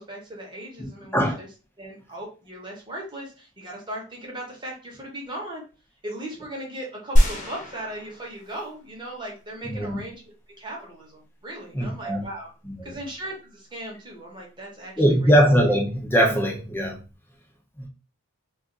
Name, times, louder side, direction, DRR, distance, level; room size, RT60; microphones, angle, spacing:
voice 1, 0.0-1.5 1.8-5.6 6.0-10.2 10.6-12.5 12.8-15.3, right 1 dB, 20° right, -2 dB, 0.9 m, -38 dB
sound 1, 7.2-8.9 9.4-9.5, equal, 35° left, 0.8 m, -23 dB
voice 2, 9.6-10.0 11.7-12.2 12.7-12.9 15.0-17.0 17.8-17.9, equal, 10° left, 1 dB, 0.5 m, -21 dB
2.4 x 2.4 x 3.7 m, 0.34 s
head